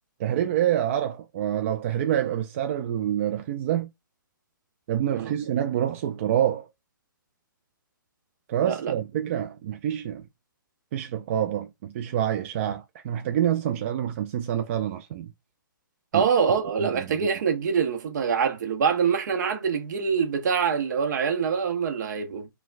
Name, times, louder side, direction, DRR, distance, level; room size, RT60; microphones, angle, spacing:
voice 1, 0.2-3.9 4.9-6.7 8.5-10.2 10.9-15.3 16.1-16.3 16.8-17.2, right 11 dB, 35° right, 0.3 m, -27 dB
voice 2, 8.6-8.9 16.1-22.5, right 6 dB, 55° right, 0.8 m, -25 dB
4.2 x 2.2 x 2.4 m
figure-of-eight pair, 130°, 11 cm